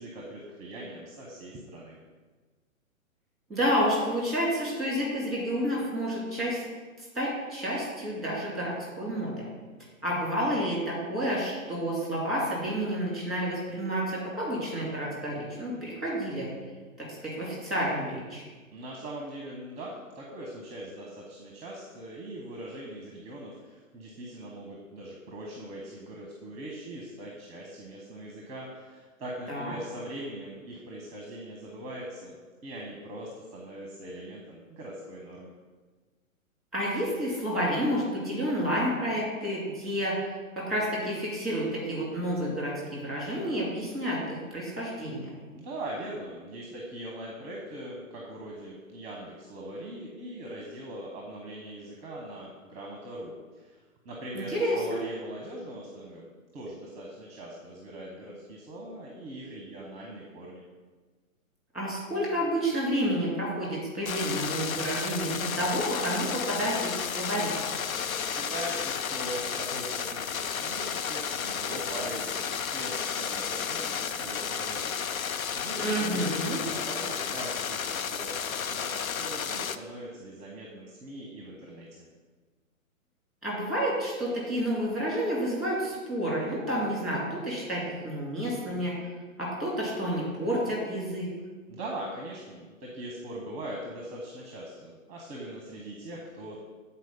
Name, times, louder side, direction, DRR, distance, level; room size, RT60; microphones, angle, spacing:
voice 1, 0.0-2.0 18.7-35.5 45.5-56.3 56.5-60.6 68.0-72.4 72.7-76.4 76.9-82.1 91.7-96.6, right 1 dB, 15° right, -1 dB, 0.9 m, -41 dB
voice 2, 3.5-6.6 7.0-9.4 10.0-16.5 17.0-18.4 29.5-29.7 36.7-45.3 54.3-55.0 61.7-67.5 75.8-76.6 83.4-88.9 89.4-91.3, equal, ahead, -3 dB, 2.4 m, -30 dB
sound 1, 64.1-79.8, left 7 dB, 80° left, 0.6 m, -32 dB
8.0 x 4.3 x 5.3 m, 1.3 s
figure-of-eight pair, 120°, 41 cm